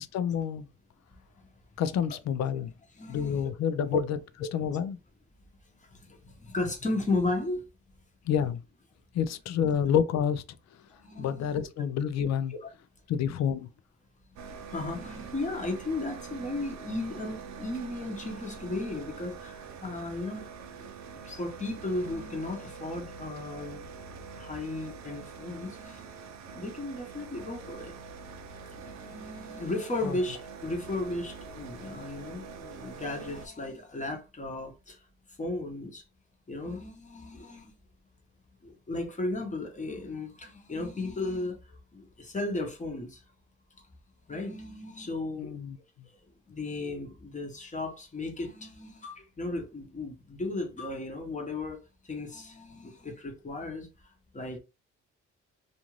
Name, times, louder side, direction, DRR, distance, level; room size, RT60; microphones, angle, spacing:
voice 1, 0.1-0.7 1.8-2.7 3.1-4.2 4.5-5.0 8.3-8.6 9.1-10.4 11.2-12.5 13.1-13.7 30.0-30.2 31.9-32.0 45.4-45.8, left 8 dB, 60° left, 0.5 m, -28 dB
voice 2, 2.9-3.5 3.9-4.0 5.8-7.6 10.9-11.7 12.5-12.7 14.7-20.9 21.2-23.9 24.3-26.2 26.5-28.0 28.6-35.0 35.4-36.0 36.5-37.7 38.6-43.2 44.3-45.5 46.5-54.6, left 2 dB, 25° left, 1.0 m, -35 dB
sound 1, 14.4-33.5, right 5 dB, 65° right, 0.6 m, -44 dB
2.5 x 2.5 x 3.0 m
cardioid pair, 90°, 30 cm